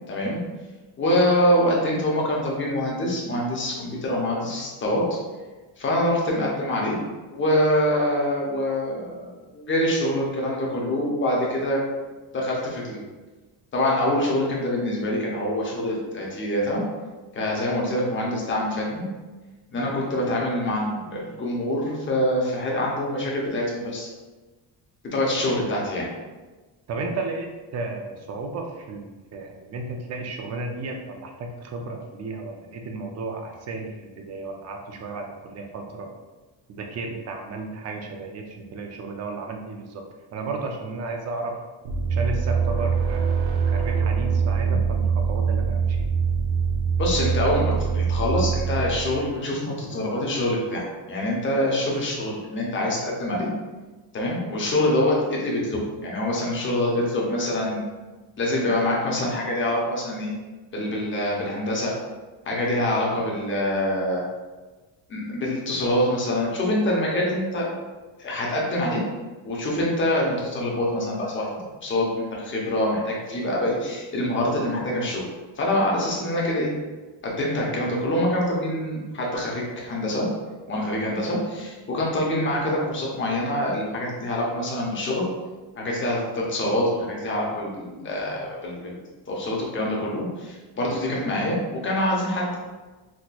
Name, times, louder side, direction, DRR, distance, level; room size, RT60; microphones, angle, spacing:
voice 1, 0.1-0.4 1.0-5.0 5.8-7.0 7.3-11.8 12.3-13.0 13.7-16.8 17.3-19.1 19.7-24.1 25.0-26.1 47.0-53.5 54.1-57.8 58.4-60.3 60.7-61.9 62.4-64.2 65.1-67.7 68.2-69.0 69.4-71.5 71.8-75.2 75.6-76.7 77.2-80.3 80.7-85.2 85.8-89.0 89.3-92.6, left 1 dB, 25° left, -3 dB, 0.7 m, -25 dB
voice 2, 26.9-36.1 36.7-40.0 40.3-41.6 42.1-46.0, right 3 dB, 35° right, 3 dB, 0.4 m, -33 dB
sound 1, 41.8-49.3, right 6 dB, 70° right, 0.7 m, -23 dB
4.2 x 2.9 x 2.2 m, 1.2 s
cardioid pair, 155°, 47 cm